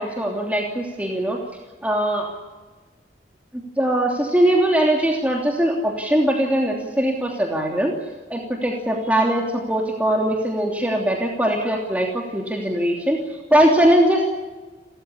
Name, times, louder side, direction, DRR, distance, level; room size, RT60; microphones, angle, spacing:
voice 1, 0.0-1.4 1.8-2.3 3.8-7.9 8.3-13.2 13.5-14.3, right 1 dB, 10° right, 0 dB, 3.0 m, -21 dB
29.5 x 14.5 x 9.9 m, 1.3 s
head